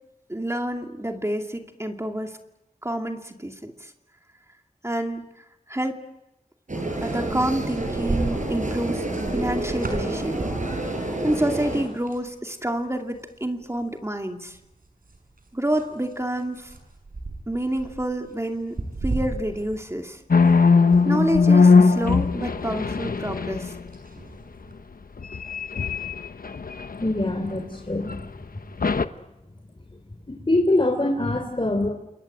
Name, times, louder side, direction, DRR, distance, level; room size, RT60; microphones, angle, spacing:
voice 1, 0.3-2.4 2.8-3.9 4.8-5.3 5.7-6.1 7.0-9.1 9.3-10.4 11.2-14.6 15.5-16.7 17.5-20.2 21.0-23.7, right 1 dB, 20° right, 4 dB, 2.5 m, -28 dB
sound 1, 6.7-11.8, right 2 dB, 60° right, 7.1 m, -29 dB
sound 2, 7.0-12.3 12.6-12.8 13.1-14.0 14.5-21.0 21.3-24.7, right 2 dB, 85° right, 6.5 m, -35 dB
sound 3, 20.3-23.9 25.2-27.5 28.0-28.2 28.8-29.1, left 4 dB, 85° left, 1.0 m, -19 dB
voice 2, 27.0-28.2 30.3-31.9, left 2 dB, 35° left, 3 dB, 3.5 m, -23 dB
29.0 x 22.0 x 9.1 m, 0.95 s
wide cardioid pair, 50°, 14 cm